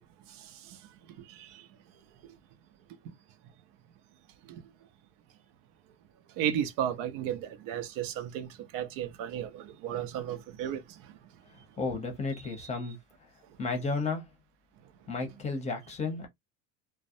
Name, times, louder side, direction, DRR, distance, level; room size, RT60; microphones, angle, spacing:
voice 1, 0.3-0.8 1.2-1.7 2.2-2.4 3.0-3.1 4.4-4.6 6.4-11.1, right 10 dB, 60° right, 0.7 m, -35 dB
voice 2, 11.8-13.0 13.6-14.3 15.1-16.3, left 3 dB, 20° left, 0.8 m, -32 dB
2.3 x 2.1 x 2.6 m
cardioid pair, 135°, 37 cm